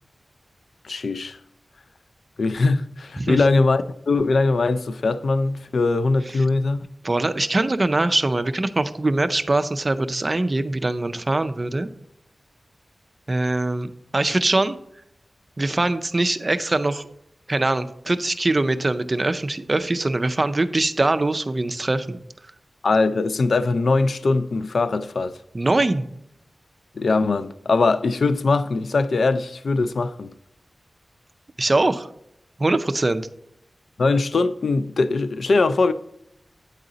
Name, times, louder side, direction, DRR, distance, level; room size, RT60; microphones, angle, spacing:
voice 1, 0.8-1.4 2.4-6.9 22.8-25.4 27.0-30.3 34.0-35.9, left 3 dB, 80° left, 0.3 m, -21 dB
voice 2, 7.0-11.9 13.3-14.8 15.6-17.1 17.5-22.2 25.5-26.1 31.6-32.1 32.6-33.3, right 2 dB, 35° right, 0.4 m, -22 dB
8.9 x 3.8 x 3.9 m
wide cardioid pair, 80°, 0 cm